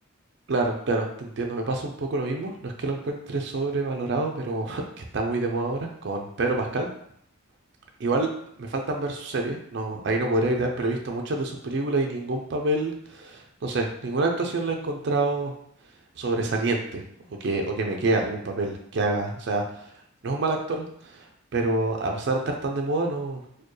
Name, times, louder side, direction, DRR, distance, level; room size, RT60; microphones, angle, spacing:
voice 1, 0.5-6.9 8.0-8.3 8.6-15.5 16.2-17.0 17.3-19.9 20.2-21.3 21.5-23.4, right 2 dB, 60° right, 2 dB, 0.5 m, -27 dB
4.4 x 2.2 x 3.1 m, 0.68 s
head